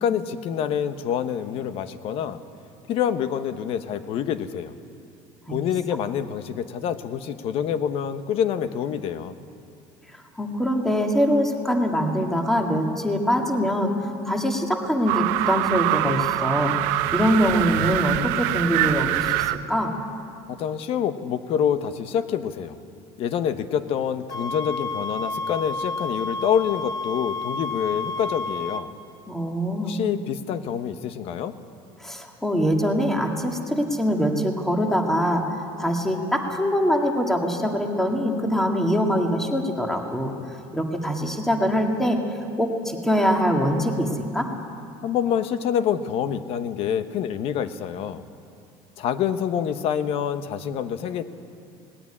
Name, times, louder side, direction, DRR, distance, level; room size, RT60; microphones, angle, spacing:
voice 1, 0.0-2.4 2.9-4.7 5.5-9.3 20.5-22.8 23.2-28.9 29.8-31.5 45.0-48.2 49.0-51.2, left 8 dB, 50° left, 11 dB, 1.1 m, -26 dB
voice 2, 10.4-16.8 17.1-19.9 29.3-30.0 32.0-40.3 40.7-42.2 42.6-44.5, equal, 5° left, 2 dB, 1.9 m, -23 dB
sound 1, 15.1-19.6, right 15 dB, 80° right, 0.8 m, -24 dB
sound 2, 24.3-28.9, left 3 dB, 25° left, 1.0 m, -30 dB
19.0 x 17.0 x 9.9 m, 2.5 s
cardioid pair, 155°, 13 cm